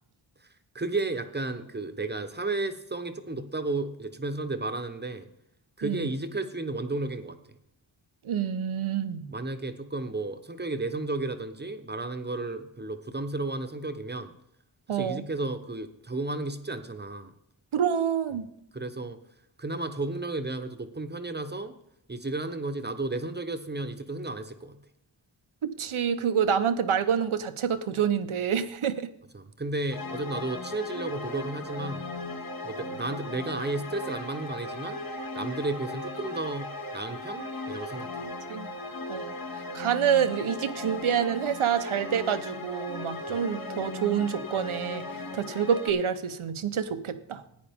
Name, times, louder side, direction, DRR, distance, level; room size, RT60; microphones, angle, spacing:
voice 1, 0.7-5.3 5.8-7.4 9.3-14.3 14.9-17.3 18.7-19.2 19.6-21.7 22.1-24.8 29.3-32.1 32.6-35.0 35.3-38.1, right 2 dB, 20° right, 8 dB, 1.0 m, -33 dB
voice 2, 8.2-9.3 14.9-15.3 17.7-18.5 25.6-29.1 38.5-38.7 39.1-39.3 39.7-47.4, right 8 dB, 90° right, 11 dB, 1.0 m, -27 dB
sound 1, 29.9-45.9, left 2 dB, 45° left, 1.6 m, -37 dB
15.0 x 9.8 x 3.6 m, 0.77 s
wide cardioid pair, 105°, 47 cm